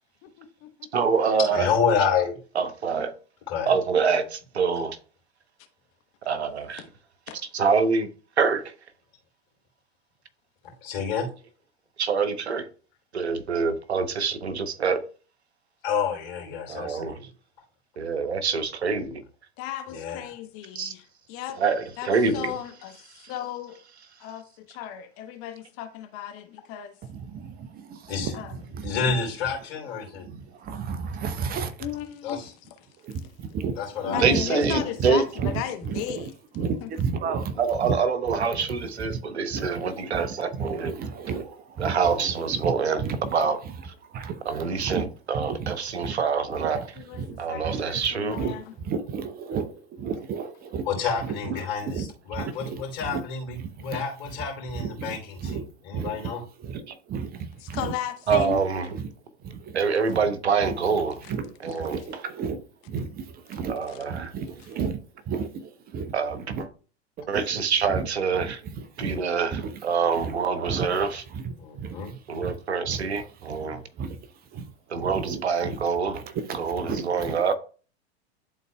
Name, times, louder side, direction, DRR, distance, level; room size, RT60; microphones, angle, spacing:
voice 1, 0.2-0.7 6.8-6.9 7.3-7.4 19.6-21.6 22.0-23.8 24.2-27.0 28.3-28.5 31.8-32.4 34.1-36.3 36.8-36.9 47.0-47.2 47.5-48.6 57.6-58.6, left 10 dB, 45° left, 1.0 m, -35 dB
voice 2, 0.9-1.7 2.6-3.1 3.7-5.0 6.2-6.8 7.5-8.1 8.4-8.7 12.0-12.7 13.1-15.0 16.7-17.2 18.0-19.2 20.7-20.9 21.6-22.5 34.1-35.2 37.6-41.0 41.8-43.6 43.8-43.9 44.4-46.9 47.4-48.4 53.9-54.0 58.3-58.9 59.7-61.2 61.6-62.0 63.7-64.3 66.1-66.4 67.3-68.6 69.0-71.2 72.3-73.8 74.9-76.2 76.6-77.5, right 5 dB, 85° right, 0.9 m, -25 dB
voice 3, 1.5-2.4 3.5-3.7 10.6-11.3 15.8-17.3 19.9-20.3 28.1-28.3 28.8-30.3 32.2-32.5 33.8-34.2 34.8-34.9 50.8-55.6 55.8-56.4 71.6-72.1 73.6-73.8, left 6 dB, 60° left, 3.1 m, -29 dB
voice 4, 27.0-29.1 30.0-31.9 33.0-33.8 34.0-38.0 38.5-45.0 45.3-45.7 46.0-46.9 47.1-50.9 51.2-53.2 53.6-54.3 54.7-57.9 58.3-58.5 58.9-59.1 59.4-60.2 60.6-60.8 61.3-63.8 64.1-65.0 65.3-66.2 66.5-66.7 67.2-67.6 67.9-68.1 68.4-69.2 69.5-69.9 70.1-72.6 72.9-73.7 73.9-75.8 76.1-77.5, right 6 dB, 30° right, 0.7 m, -34 dB
11.5 x 3.9 x 2.2 m
hypercardioid pair, 95°, 32 cm